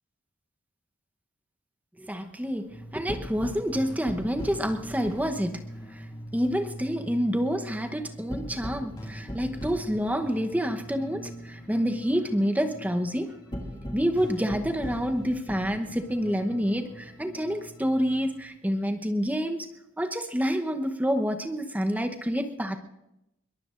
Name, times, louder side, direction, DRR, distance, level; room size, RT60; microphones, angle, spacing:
voice 1, 2.0-5.6 5.9-6.0 6.3-13.4 13.9-19.7 20.0-22.8, equal, 10° right, 5 dB, 0.9 m, -28 dB
sound 1, 2.7-18.4, equal, 20° left, 2.3 m, -40 dB
22.0 x 22.0 x 2.6 m, 0.90 s
head